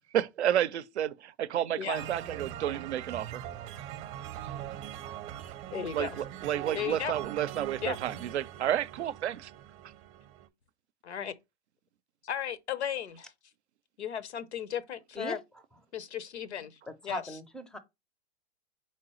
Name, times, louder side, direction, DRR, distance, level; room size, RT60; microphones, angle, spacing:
voice 1, 0.1-3.4 4.4-4.6 5.9-9.5, right 10 dB, 90° right, 0.5 m, -31 dB
voice 2, 1.8-2.1 5.7-6.2 6.7-7.1 7.8-8.0 11.0-11.3 12.2-13.3 14.0-15.4 15.9-16.8 17.0-17.2, left 8 dB, 85° left, 0.8 m, -35 dB
sound 1, 1.9-10.5, right 11 dB, 35° right, 0.7 m, -42 dB
voice 3, 16.9-17.8, equal, ahead, 0.4 m, -39 dB
4.4 x 3.9 x 3.0 m
hypercardioid pair, 115°, 33 cm